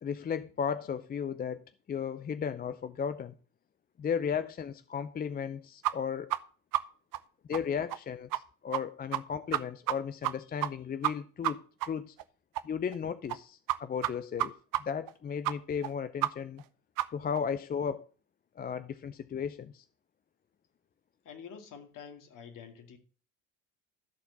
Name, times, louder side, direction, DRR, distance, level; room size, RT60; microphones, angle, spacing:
voice 1, 0.0-3.3 4.0-6.3 7.5-12.2 12.6-16.6 17.1-18.1 18.6-19.8, left 7 dB, 25° left, 0.5 m, -35 dB
sound 1, 5.8-5.9 6.3-6.4 6.7-6.8 7.1-7.2 7.5-7.6 7.9-8.0 8.3-8.4 8.7-8.8 9.1-9.2 9.5-10.0 10.2-10.3 10.6-10.7 11.0-11.1 11.4-11.5 11.8-11.9 12.2-12.3 12.5-12.6 12.9-13.0 13.3-13.4 13.7-13.8 14.0-14.1 14.4-14.5 14.7-14.8 15.1-15.2 15.4-15.5 15.8-15.9 16.2-16.3 16.6-16.7 17.0-17.1 17.4-17.5, right 15 dB, 55° right, 0.8 m, -29 dB
voice 2, 21.2-23.0, left 7 dB, 50° left, 2.2 m, -47 dB
13.0 x 4.4 x 6.7 m
hypercardioid pair, 75°, 40 cm